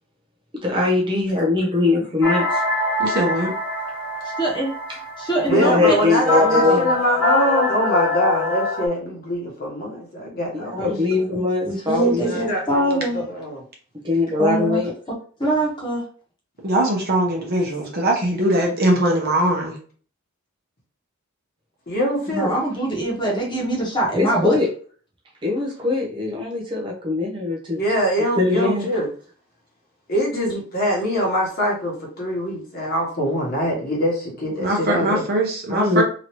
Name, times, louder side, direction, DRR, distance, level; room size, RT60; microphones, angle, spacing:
voice 1, 0.6-2.6 5.5-6.8 10.5-12.4 14.0-14.9 24.2-24.7 25.4-27.8 28.4-28.9 35.7-36.0, left 3 dB, 20° right, -2 dB, 0.6 m, -21 dB
sound 1, 2.2-8.9, left 2 dB, 75° left, 1.0 m, -23 dB
voice 2, 3.0-3.5 16.6-19.7 34.6-36.0, right 1 dB, 45° right, 0 dB, 0.9 m, -21 dB
voice 3, 4.4-4.7 5.2-6.1 6.4-6.9 10.8-13.2 14.4-14.8 15.4-16.0 22.3-24.6, right 1 dB, 20° left, -3 dB, 1.1 m, -23 dB
voice 4, 5.5-11.2 12.0-13.6 21.9-22.5 27.7-29.1 30.1-35.2, equal, 45° left, -2 dB, 1.2 m, -24 dB
3.0 x 2.7 x 3.0 m, 0.43 s
head